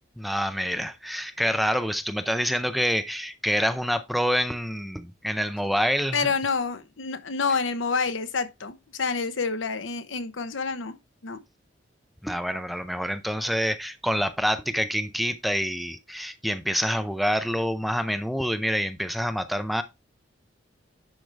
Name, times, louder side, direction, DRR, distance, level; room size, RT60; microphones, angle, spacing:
voice 1, 0.2-6.3 12.2-19.8, equal, ahead, 0.5 m, -27 dB
voice 2, 6.1-10.9 11.2-11.4, left 4 dB, 85° left, 0.9 m, -28 dB
10.5 x 4.8 x 3.3 m
head